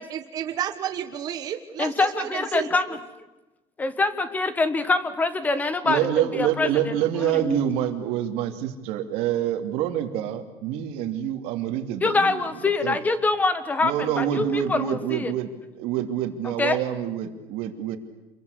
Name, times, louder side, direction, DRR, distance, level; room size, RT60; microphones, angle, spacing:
voice 1, 0.0-2.7, right 10 dB, 40° right, 7 dB, 1.3 m, -31 dB
voice 2, 1.8-3.2 3.8-7.6 12.0-15.3 16.4-16.8, left 3 dB, 15° left, 13 dB, 1.3 m, -25 dB
voice 3, 5.8-12.4 12.8-13.0 13.8-18.0, right 11 dB, 75° right, 7 dB, 2.7 m, -27 dB
27.5 x 22.5 x 8.4 m, 1.1 s
cardioid pair, 175°, 10 cm